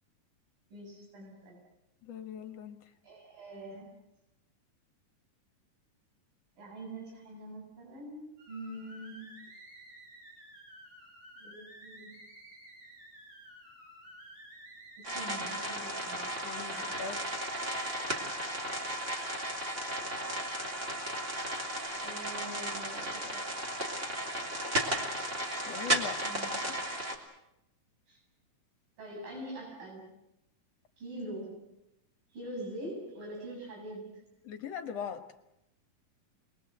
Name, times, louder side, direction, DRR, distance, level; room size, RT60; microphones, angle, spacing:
voice 1, 0.7-1.6 3.0-4.0 6.6-9.5 11.4-12.1 15.0-16.2 16.7-16.9 21.6-23.5 26.2-26.7 28.1-28.2 29.0-30.1 31.0-31.7 32.3-34.3, right 1 dB, 70° right, -1 dB, 9.1 m, -44 dB
voice 2, 2.0-2.8 16.4-17.3 25.7-26.2 34.4-35.3, left 7 dB, 55° left, 6 dB, 2.2 m, -40 dB
sound 1, 8.4-21.9, right 1 dB, 90° right, 7.1 m, -52 dB
sound 2, 15.0-27.2, right 1 dB, 20° right, 3.2 m, -35 dB
29.0 x 21.5 x 7.9 m, 0.88 s
omnidirectional pair, 4.0 m